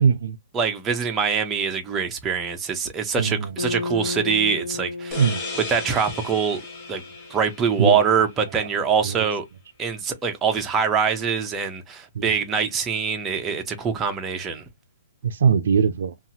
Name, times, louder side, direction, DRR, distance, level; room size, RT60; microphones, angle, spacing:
voice 1, 0.0-0.4 3.2-3.5 5.2-5.4 7.8-8.3 9.0-9.2 12.1-12.3 15.2-16.1, right 6 dB, 60° right, 0.4 m, -21 dB
voice 2, 0.5-5.2 5.7-6.6 6.9-7.0 7.3-9.5 9.8-14.6, right 6 dB, 10° right, 0.5 m, -24 dB
sound 1, 3.5-7.9, left 3 dB, 65° left, 1.3 m, -34 dB
sound 2, 5.1-8.6, left 3 dB, 15° left, 0.8 m, -36 dB
2.8 x 2.4 x 2.7 m
hypercardioid pair, 165°, 0 cm